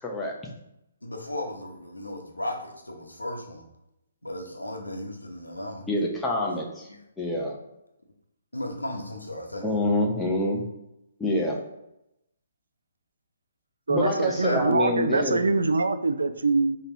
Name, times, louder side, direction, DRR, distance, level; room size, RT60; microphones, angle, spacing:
voice 1, 0.0-0.4 5.9-6.9 7.2-7.6 9.6-10.6 11.2-11.6 13.9-15.5, left 1 dB, 10° left, -2 dB, 0.9 m, -26 dB
voice 2, 1.0-3.6 4.2-5.8 6.9-7.0 8.5-9.8 14.1-14.6, left 1 dB, 85° left, 1 dB, 0.9 m, -35 dB
voice 3, 13.9-16.8, right 3 dB, 70° right, 9 dB, 0.4 m, -24 dB
5.0 x 3.1 x 3.0 m, 0.86 s
figure-of-eight pair, 130°, 0 cm